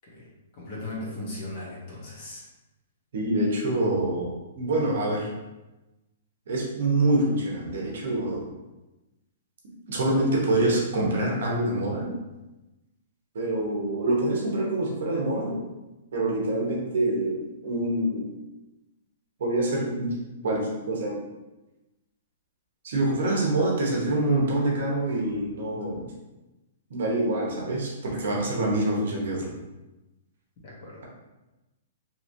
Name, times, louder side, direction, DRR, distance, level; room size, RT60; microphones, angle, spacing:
voice 1, 0.5-2.4 30.6-31.0, left 2 dB, 30° left, -5 dB, 0.8 m, -37 dB
voice 2, 3.1-4.3 4.6-5.3 6.5-8.4 9.9-12.1 13.3-15.6 16.1-18.3 19.4-20.1 20.4-21.2 22.8-26.1 26.9-29.5, right 1 dB, 55° right, -2 dB, 0.9 m, -26 dB
3.0 x 2.8 x 2.6 m, 1.0 s
hypercardioid pair, 180°, 0 cm